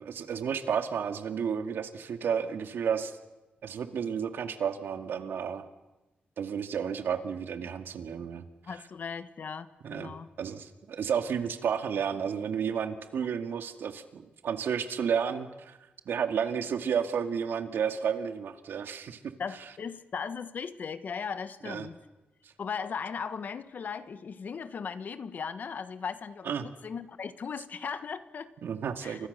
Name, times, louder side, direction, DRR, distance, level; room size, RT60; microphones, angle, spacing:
voice 1, 0.0-3.2 3.6-5.6 6.4-8.5 9.8-15.8 16.1-19.2 21.7-21.9 22.4-22.5 26.4-26.7 28.6-29.3, right 7 dB, 75° right, 8 dB, 2.2 m, -32 dB
voice 2, 8.6-10.3 19.4-22.0 22.6-28.5 29.0-29.2, left 6 dB, 55° left, 13 dB, 1.5 m, -37 dB
29.5 x 25.5 x 6.8 m, 1.0 s
wide cardioid pair, 125°, 4 cm